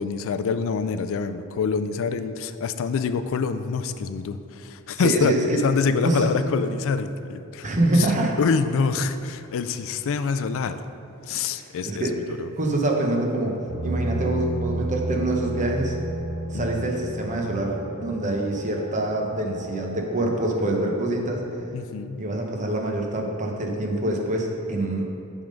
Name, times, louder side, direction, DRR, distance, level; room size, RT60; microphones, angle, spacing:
voice 1, 0.0-5.3 5.6-7.7 7.9-8.1 8.4-10.8 11.3-12.0 12.4-12.5 16.5-16.9 21.7-22.2, left 5 dB, 65° left, 11 dB, 0.3 m, -26 dB
voice 2, 5.0-5.6 6.0-6.3 7.6-8.3 11.3-12.1 12.6-13.5 13.8-16.0 16.5-21.4 22.2-25.1, right 1 dB, 35° right, 1 dB, 0.9 m, -25 dB
sound 1, 13.7-21.6, right 1 dB, 75° right, 1.5 m, -33 dB
8.7 x 3.7 x 5.2 m, 2.6 s
head